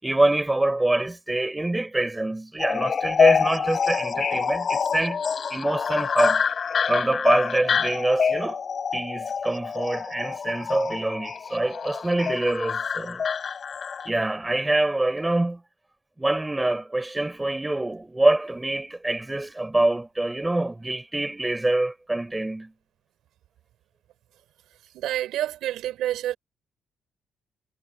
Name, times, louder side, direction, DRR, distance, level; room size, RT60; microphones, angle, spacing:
voice 1, 0.0-5.2 5.5-6.5 6.9-8.6 8.9-13.2 14.1-15.6 16.2-22.7, right 2 dB, 15° right, 5.4 m, -25 dB
sound 1, 2.6-14.1, left 6 dB, 45° left, 7.1 m, -26 dB
voice 2, 24.9-26.4, right 13 dB, 85° right, 5.9 m, -28 dB
cardioid pair, 90°, 0 cm